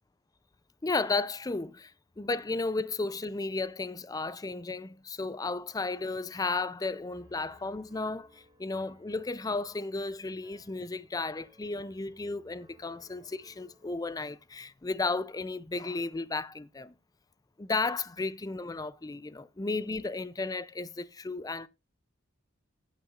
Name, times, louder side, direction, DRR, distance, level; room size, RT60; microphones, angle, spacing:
voice 1, 0.8-1.9 2.2-16.9 17.6-21.7, left 3 dB, 20° left, 0.4 m, -34 dB
Piano, 7.1-13.9, left 1 dB, 20° right, 3.1 m, -62 dB
15.0 x 8.4 x 2.4 m
head